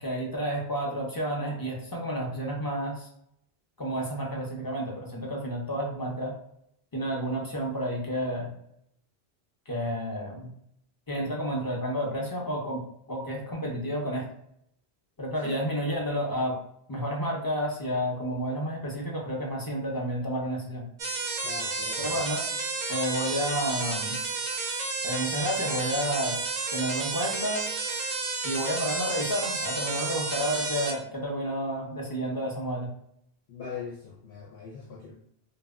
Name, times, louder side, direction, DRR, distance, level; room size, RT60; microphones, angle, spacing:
voice 1, 0.0-3.1 3.8-6.3 6.9-8.5 9.7-10.5 11.1-14.3 15.2-16.6 16.9-20.9 22.0-22.4 22.9-24.2 25.0-26.4 26.7-27.7 28.4-32.9, equal, 30° left, -2 dB, 0.5 m, -30 dB
sound 1, 21.0-30.9, right 3 dB, 60° right, 0.6 m, -31 dB
voice 2, 21.4-22.2 33.5-35.2, left 6 dB, 75° left, -2 dB, 0.8 m, -41 dB
2.1 x 2.0 x 3.4 m, 0.73 s
omnidirectional pair, 1.0 m